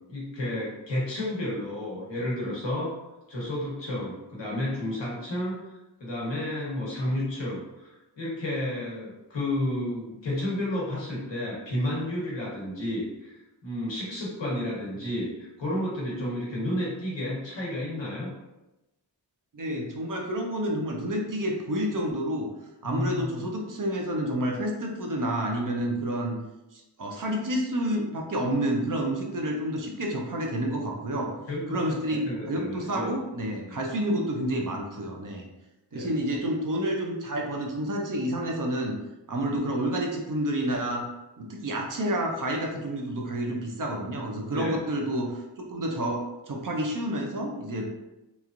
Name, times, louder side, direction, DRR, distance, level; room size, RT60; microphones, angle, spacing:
voice 1, 0.1-2.9 3.3-5.6 6.0-13.4 13.6-18.3 22.8-23.3 31.5-31.9 32.2-33.1 33.7-33.8 35.9-36.1 44.5-44.8, left 1 dB, 80° left, -5 dB, 1.1 m, -31 dB
voice 2, 19.5-22.5 22.8-26.4 26.7-31.3 31.7-35.5 35.9-39.0 39.3-41.1 41.4-45.4 45.7-47.9, right 1 dB, 50° right, 1 dB, 0.6 m, -29 dB
3.0 x 2.4 x 2.5 m, 0.98 s
wide cardioid pair, 75°, 43 cm